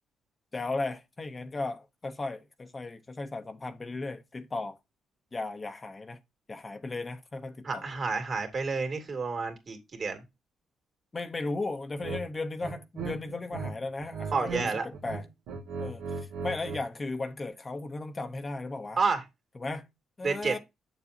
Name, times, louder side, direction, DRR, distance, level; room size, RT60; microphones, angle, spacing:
voice 1, 0.5-4.8 5.3-6.2 6.5-7.9 11.1-15.2 15.8-19.0 19.6-19.9 20.2-20.6, left 3 dB, 25° left, 0.8 m, -36 dB
voice 2, 7.6-10.2 14.3-14.9 19.0-19.2 20.2-20.5, right 4 dB, 45° right, 2.4 m, -30 dB
sound 1, 12.0-12.2 12.6-13.7 14.0-14.7 14.9-16.8, right 4 dB, 90° right, 1.8 m, -37 dB
7.5 x 7.0 x 2.7 m
cardioid pair, 90°, 0 cm